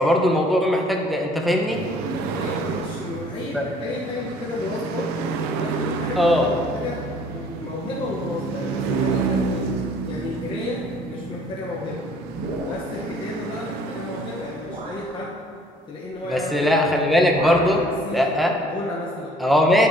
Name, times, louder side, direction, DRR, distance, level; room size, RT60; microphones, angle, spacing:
voice 1, 0.0-1.8 3.5-3.6 6.2-6.5 16.3-17.8 18.1-18.5 19.4-19.9, left 1 dB, ahead, 0 dB, 1.0 m, -19 dB
sound 1, 1.7-15.1, right 5 dB, 85° right, 0.6 m, -30 dB
voice 2, 2.4-5.1 5.5-9.7 10.1-12.1 12.6-15.4 15.9-16.7 17.7-19.4, left 2 dB, 30° left, -5 dB, 1.0 m, -32 dB
sound 2, 12.3-13.1 14.0-14.1 14.6-15.1 16.5-16.8 17.0-17.8, right 1 dB, 55° right, 1.5 m, -33 dB
10.0 x 6.8 x 2.8 m, 2.3 s
cardioid pair, 110°, 16 cm